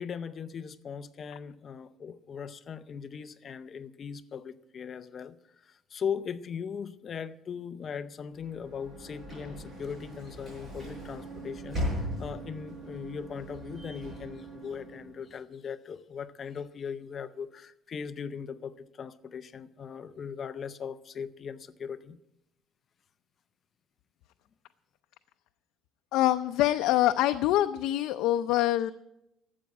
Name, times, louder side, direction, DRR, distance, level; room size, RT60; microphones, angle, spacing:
voice 1, 0.0-5.4 5.6-22.2, left 7 dB, 30° left, 0.5 m, -39 dB
Sliding door / Slam, 8.3-15.3, equal, 20° right, 6.9 m, -39 dB
voice 2, 26.1-28.9, left 14 dB, 85° left, 0.5 m, -25 dB
12.5 x 8.2 x 9.4 m
cardioid pair, 165°, 0 cm